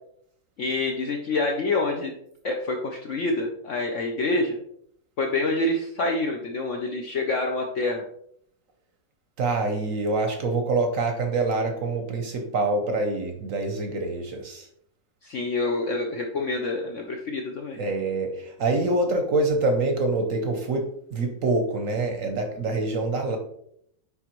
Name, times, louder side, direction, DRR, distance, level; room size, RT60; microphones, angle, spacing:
voice 1, 0.6-2.1 2.4-4.6 5.2-8.0 15.2-17.8, left 2 dB, 65° left, 2 dB, 0.8 m, -27 dB
voice 2, 9.4-14.7 17.7-23.4, right 2 dB, 60° right, 4 dB, 0.9 m, -25 dB
9.5 x 3.5 x 3.0 m, 0.70 s
omnidirectional pair, 1.9 m